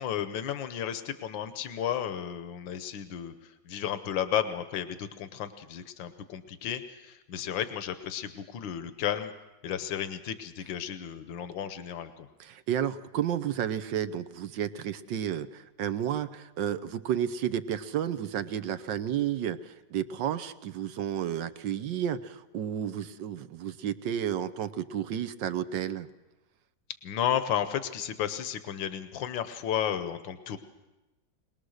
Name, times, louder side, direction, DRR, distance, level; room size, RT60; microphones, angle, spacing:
voice 1, 0.0-9.3 9.6-12.3 27.0-30.6, left 9 dB, 80° left, 10 dB, 1.7 m, -33 dB
voice 2, 12.4-26.1, right 10 dB, 75° right, 12 dB, 1.5 m, -32 dB
22.0 x 20.0 x 6.5 m, 1.0 s
omnidirectional pair, 2.0 m